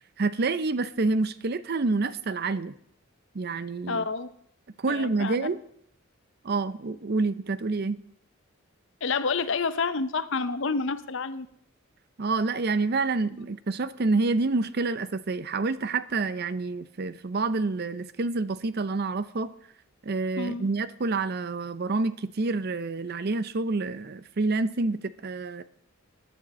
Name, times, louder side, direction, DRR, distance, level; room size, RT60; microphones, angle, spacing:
voice 1, 0.2-2.7 3.3-4.0 4.8-5.6 6.4-8.0 12.2-19.5 20.0-25.6, right 3 dB, 50° right, 14 dB, 0.6 m, -28 dB
voice 2, 3.9-4.3 4.9-5.5 9.0-11.5 20.4-20.7, left 4 dB, 60° left, 12 dB, 0.7 m, -29 dB
14.5 x 10.0 x 4.2 m, 0.70 s
head